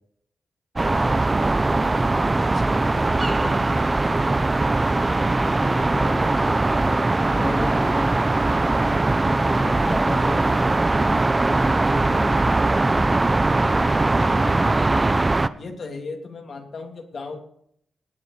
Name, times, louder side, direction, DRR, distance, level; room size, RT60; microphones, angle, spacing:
voice 1, 0.8-1.4 3.2-3.6 5.4-8.3 9.6-11.3 12.1-12.3 14.4-15.3, left 2 dB, 20° left, 3 dB, 1.5 m, -35 dB
sound 1, 0.8-15.5, right 2 dB, 25° right, 0.7 m, -20 dB
voice 2, 2.4-2.8 14.2-14.5 15.5-17.4, left 3 dB, 60° left, 2 dB, 3.0 m, -36 dB
18.5 x 8.2 x 4.9 m, 0.69 s
cardioid pair, 80°, 0 cm